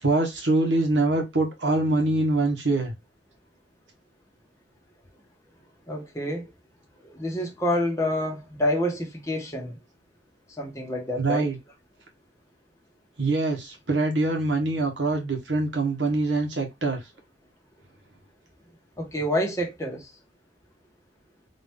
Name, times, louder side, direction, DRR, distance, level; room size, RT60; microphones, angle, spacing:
voice 1, 0.0-2.9 11.2-11.6 13.2-17.0, right 2 dB, 80° right, 1.6 m, -24 dB
voice 2, 5.9-6.5 7.0-9.8 10.6-11.5 19.0-20.1, left 1 dB, 15° left, 1.5 m, -28 dB
4.1 x 3.0 x 3.6 m
head